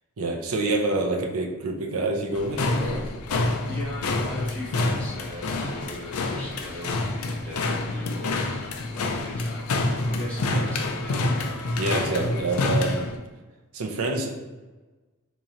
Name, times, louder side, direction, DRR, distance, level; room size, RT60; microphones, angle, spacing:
voice 1, 0.2-3.1 10.4-10.7 11.8-13.1 13.7-14.3, right 2 dB, 70° right, 1 dB, 0.5 m, -27 dB
sound 1, 2.3-13.2, left 2 dB, 80° left, 0.4 m, -27 dB
voice 2, 3.2-8.3 8.9-9.7 10.0-11.5, left 1 dB, 5° left, -8 dB, 1.1 m, -38 dB
sound 2, 5.0-11.7, left 1 dB, 40° left, 0.9 m, -49 dB
3.0 x 2.9 x 3.8 m, 1.2 s
head